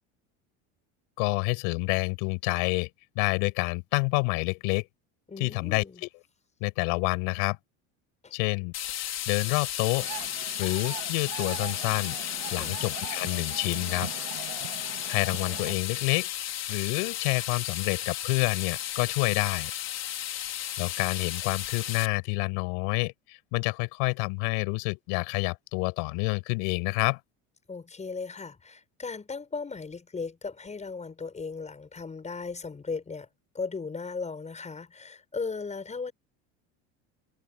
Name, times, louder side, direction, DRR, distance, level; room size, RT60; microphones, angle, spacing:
voice 1, 1.2-2.9 3.1-4.9 5.4-6.1 6.6-7.6 8.3-10.1 10.6-12.1 12.5-14.1 14.8-16.3 16.7-19.7 20.8-27.2, left 35 dB, 75° left, 6.3 m, -28 dB
voice 2, 5.3-6.0 8.2-8.3 12.5-12.8 27.7-33.3 33.5-36.1, left 4 dB, 20° left, 6.7 m, -37 dB
sound 1, 8.7-22.1, left 12 dB, 45° left, 5.1 m, -34 dB
sound 2, 10.0-15.7, right 23 dB, 85° right, 3.6 m, -41 dB
supercardioid pair, 115°, 35 cm